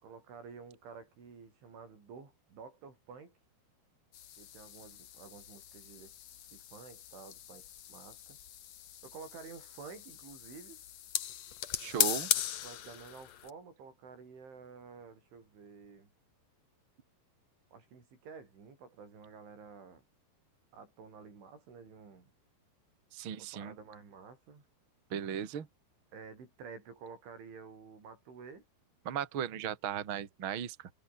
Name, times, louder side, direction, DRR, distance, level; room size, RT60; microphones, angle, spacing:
voice 1, 0.0-3.4 4.4-6.2 6.5-8.4 9.0-10.8 12.3-16.1 17.7-20.0 20.7-22.3 23.4-24.6 26.1-28.6, right 5 dB, 85° right, 9.4 m, -51 dB
sound 1, 4.1-13.5, left 11 dB, 75° left, 1.5 m, -38 dB
voice 2, 11.8-12.3 23.1-23.7 25.1-25.7 29.1-30.9, right 9 dB, 40° right, 1.8 m, -37 dB
omnidirectional pair, 5.3 m